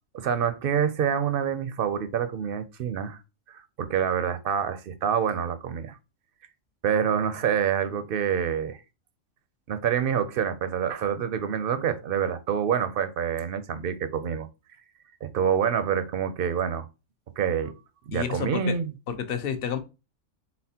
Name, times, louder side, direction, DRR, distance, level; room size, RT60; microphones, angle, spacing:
voice 1, 0.1-3.2 3.5-6.0 6.8-8.8 9.7-14.5 15.2-16.9 17.4-17.7 18.1-18.9, right 8 dB, 60° right, 0.6 m, -27 dB
voice 2, 18.1-18.8 19.1-19.8, left 8 dB, 55° left, 0.8 m, -30 dB
4.2 x 3.9 x 2.7 m
omnidirectional pair, 1.3 m